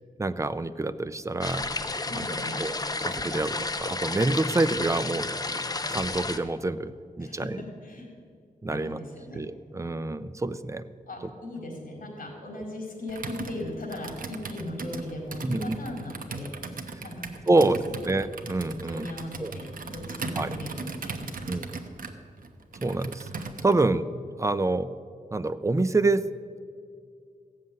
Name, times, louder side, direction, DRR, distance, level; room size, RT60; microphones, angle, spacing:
voice 1, 0.2-1.7 2.6-2.7 3.0-5.3 5.9-6.9 7.2-7.6 8.6-9.0 9.3-10.9 15.4-15.8 17.5-17.8 18.1-19.1 19.4-19.5 20.4-20.5 21.5-21.8 22.8-23.3 23.6-24.1 24.4-24.9 25.3-26.3, right 2 dB, 20° right, 13 dB, 0.5 m, -26 dB
sound 1, 1.4-6.4, left 3 dB, 25° left, 0.7 m, -31 dB
voice 2, 2.1-2.6 7.2-8.1 8.6-9.4 11.1-16.5 17.0-18.0 18.7-21.7, left 1 dB, 65° left, 0 dB, 4.2 m, -38 dB
Computer keyboard, 13.1-23.9, right 4 dB, 70° right, 1.1 m, -38 dB
15.5 x 7.6 x 9.2 m, 2.3 s
wide cardioid pair, 135°, 15 cm